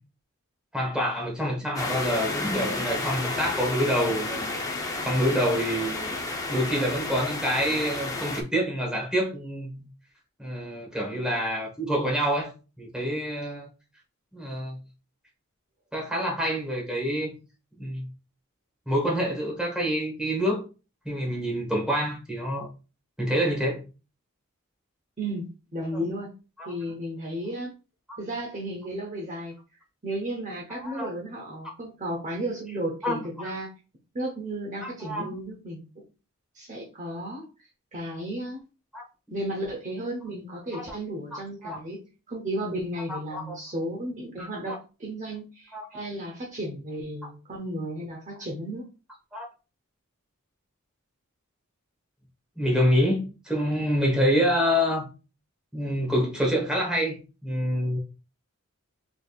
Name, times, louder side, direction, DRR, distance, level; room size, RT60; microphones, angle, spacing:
voice 1, 0.7-4.5 5.0-6.2 6.5-9.9 10.4-13.7 14.3-14.8 15.9-17.4 17.8-18.1 18.9-20.6 21.0-22.7 23.2-23.8 25.9-26.1 26.6-26.7 28.1-28.2 30.8-31.1 33.0-33.5 34.8-35.3 38.9-39.0 40.7-40.8 41.3-41.8 43.1-43.6 44.4-44.8 45.7-46.0 49.3-49.5 52.6-55.1 55.7-58.0, equal, 5° right, 1.2 m, -27 dB
sound 1, 1.7-8.4, left 2 dB, 15° left, 0.6 m, -31 dB
voice 2, 25.2-26.3 26.6-27.7 28.2-29.5 30.0-33.7 34.1-35.9 36.5-38.6 39.3-48.9, right 1 dB, 35° right, 0.8 m, -34 dB
4.0 x 3.5 x 2.3 m
head